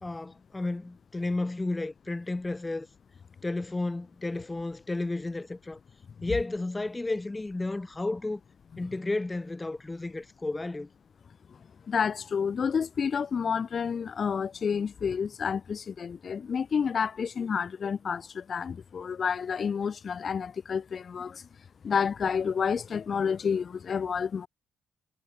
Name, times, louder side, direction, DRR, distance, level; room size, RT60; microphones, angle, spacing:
voice 1, 0.0-2.9 3.4-5.8 6.2-8.4 8.8-10.9, left 2 dB, 15° left, 1.7 m, -32 dB
voice 2, 11.9-21.5 21.8-24.5, left 6 dB, 45° left, 1.1 m, -29 dB
cardioid pair, 100°, 0 cm